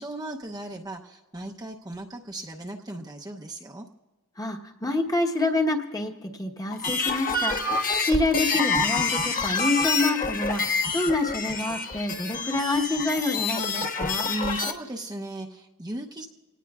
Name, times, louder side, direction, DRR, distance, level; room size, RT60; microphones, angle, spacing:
voice 1, 0.0-3.8 14.3-16.3, right 1 dB, 20° right, 0 dB, 0.8 m, -36 dB
voice 2, 4.4-14.3, left 2 dB, 15° left, 2 dB, 1.2 m, -27 dB
sound 1, 6.7-14.7, left 4 dB, 40° left, 1.2 m, -27 dB
26.5 x 18.5 x 2.4 m, 1.2 s
head